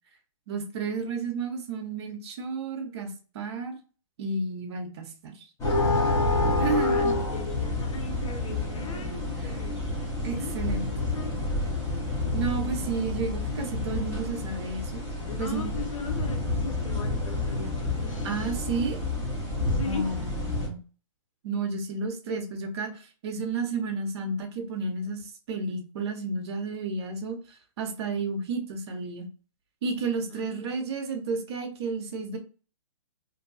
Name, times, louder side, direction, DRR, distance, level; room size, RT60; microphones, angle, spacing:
voice 1, 0.5-3.1 3.3-3.8 4.2-5.5 6.6-7.2 9.4-9.5 10.2-10.9 12.3-15.0 15.4-15.6 18.2-19.0 19.8-20.8 21.4-27.4 27.8-29.3 29.8-32.4, right 4 dB, 50° right, 5 dB, 0.8 m, -32 dB
sound 1, 5.6-20.7, left 2 dB, 15° left, 1.2 m, -29 dB
voice 2, 6.3-9.8 10.3-11.4 15.2-18.5 19.5-20.1 30.3-30.7, left 4 dB, 70° left, 5 dB, 0.9 m, -39 dB
2.6 x 2.2 x 4.0 m, 0.37 s
hypercardioid pair, 145°, 18 cm